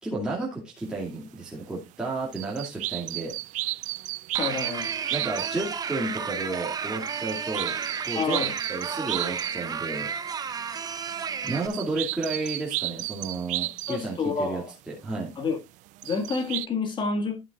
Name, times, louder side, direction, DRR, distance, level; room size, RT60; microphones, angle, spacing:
voice 1, 0.0-3.3 5.1-7.8 8.0-10.1 11.4-14.6 14.9-15.3, right 2 dB, 5° right, 2.5 m, -32 dB
sound 1, 1.9-2.0 2.3-5.6 6.9-9.7 10.0-10.8 11.1-14.1 15.1-15.2 16.0-16.7, right 19 dB, 60° right, 0.4 m, -34 dB
sound 2, 4.3-11.7, right 6 dB, 25° right, 0.9 m, -32 dB
voice 2, 4.4-4.9 8.2-8.5 13.9-14.7 15.4-15.6 16.0-17.4, left 4 dB, 35° left, 2.0 m, -28 dB
12.0 x 7.4 x 2.4 m
cardioid pair, 135°, 15 cm